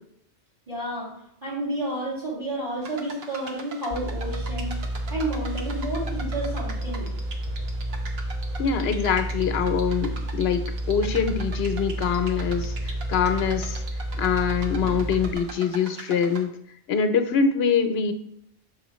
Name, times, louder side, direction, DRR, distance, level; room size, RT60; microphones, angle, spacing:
voice 1, 0.7-1.1 1.4-4.8 5.1-7.1, right 1 dB, 35° right, -7 dB, 2.7 m, -30 dB
sound 1, 2.8-16.4, right 4 dB, 65° right, 1.1 m, -42 dB
sound 2, 3.9-15.3, right 1 dB, 15° right, 1.2 m, -30 dB
voice 2, 8.6-10.6 10.9-13.8 14.2-16.5 16.9-18.1, left 6 dB, 65° left, 8 dB, 0.9 m, -24 dB
6.4 x 5.4 x 3.0 m, 0.71 s
omnidirectional pair, 1.1 m